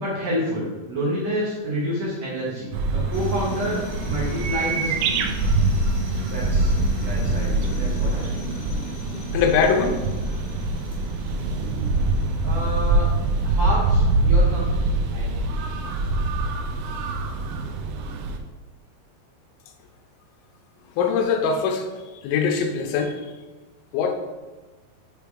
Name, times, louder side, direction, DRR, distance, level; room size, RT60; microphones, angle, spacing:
voice 1, 0.0-5.3 6.3-8.5 12.4-13.1 13.4-15.5, equal, 70° right, -7 dB, 1.5 m, -29 dB
sound 1, 2.7-18.4, right 2 dB, 90° right, 3.0 m, -24 dB
sound 2, 3.1-16.4, equal, 70° left, 0.4 m, -37 dB
voice 2, 9.3-10.0 21.0-21.9 22.2-23.3 23.9-24.1, left 5 dB, 90° left, 5 dB, 3.1 m, -22 dB
7.7 x 3.4 x 4.8 m, 1.2 s
omnidirectional pair, 5.3 m